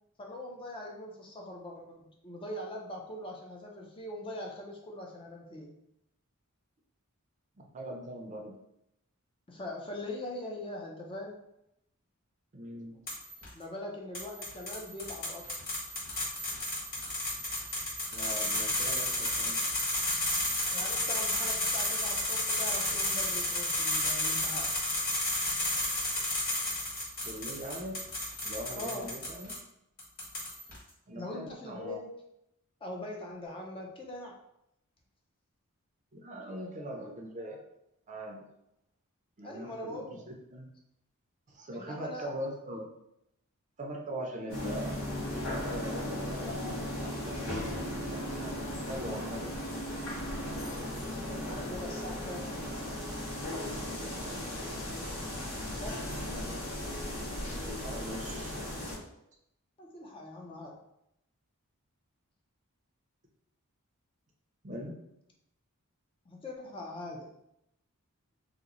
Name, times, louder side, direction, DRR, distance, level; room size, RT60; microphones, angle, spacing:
voice 1, 0.2-5.7 9.5-11.4 13.5-15.5 20.7-24.7 28.7-29.1 31.1-32.0 32.8-34.4 39.4-40.2 41.7-42.3 51.1-52.5 55.8-56.0 59.8-60.8 66.3-67.3, left 1 dB, 25° left, 0 dB, 0.4 m, -42 dB
voice 2, 7.6-8.6 12.5-13.0 18.1-19.6 27.3-28.0 28.4-29.6 31.1-32.0 36.1-37.6 38.1-38.4 39.4-40.7 41.5-42.9 43.8-45.0 45.5-47.4 48.1-48.5 48.9-49.5 54.0-54.5 57.7-58.5 64.6-64.9, right 1 dB, 35° right, 1 dB, 0.5 m, -41 dB
sound 1, 13.1-13.5 14.1-29.6 30.0-30.8, left 1 dB, 45° left, 1.3 m, -32 dB
sound 2, 44.5-59.0, left 1 dB, 65° left, 1.1 m, -36 dB
2.9 x 2.0 x 3.7 m, 0.80 s
head